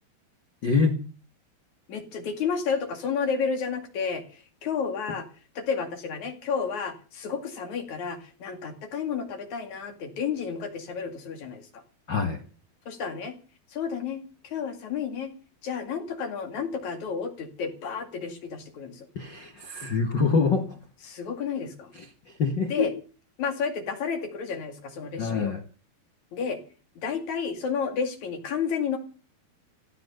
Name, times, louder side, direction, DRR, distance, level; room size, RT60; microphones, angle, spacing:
voice 1, 0.6-1.0 12.1-12.4 19.1-20.8 21.9-22.0 22.4-22.9 25.2-25.6, left 4 dB, 65° left, 7 dB, 1.1 m, -25 dB
voice 2, 1.9-5.3 5.5-11.8 12.9-13.4 13.7-15.3 15.6-19.1 21.0-21.9 22.7-22.9 23.4-25.5 26.3-26.6 27.0-29.0, left 6 dB, 50° left, 6 dB, 3.3 m, -31 dB
16.5 x 13.0 x 6.7 m, 0.38 s
omnidirectional pair, 4.7 m